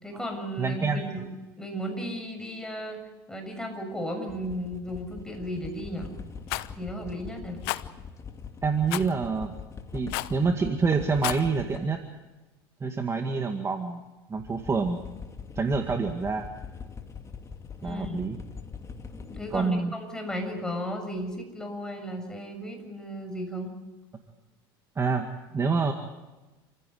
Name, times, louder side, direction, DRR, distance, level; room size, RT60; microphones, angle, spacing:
voice 1, 0.0-1.3 1.6-3.0 3.3-6.1 6.8-7.6 17.8-18.2 19.1-23.7, equal, 5° left, 4 dB, 6.8 m, -35 dB
voice 2, 0.6-1.0 8.6-9.6 9.9-12.1 12.8-14.0 14.3-15.0 15.6-16.4 17.8-18.4 19.5-19.9 25.0-25.9, right 4 dB, 20° right, 5 dB, 2.0 m, -27 dB
sound 1, 4.3-12.1 14.4-19.7, left 5 dB, 25° left, 2.3 m, -42 dB
Rattle, 6.5-6.7 7.6-7.8 8.9-9.1 10.1-10.4 11.1-11.4, left 19 dB, 75° left, 0.9 m, -31 dB
28.5 x 16.0 x 7.9 m, 1.2 s
supercardioid pair, 100°, 12 cm